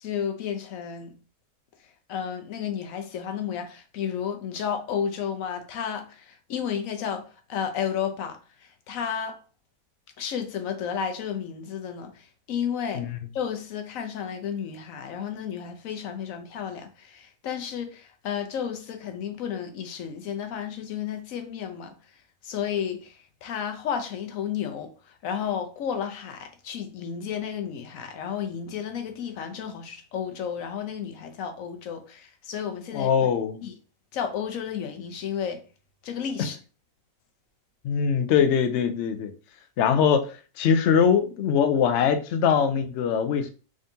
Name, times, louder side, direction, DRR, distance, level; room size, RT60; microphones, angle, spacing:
voice 1, 0.0-1.2 2.1-9.4 10.2-13.1 13.3-21.9 22.4-33.1 33.6-33.7 34.1-35.6 36.0-36.6, left 8 dB, 65° left, 1.0 m, -32 dB
voice 2, 32.9-33.6 37.8-39.3 39.8-43.5, left 7 dB, 80° left, 0.6 m, -22 dB
3.7 x 3.6 x 2.7 m
omnidirectional pair, 1.8 m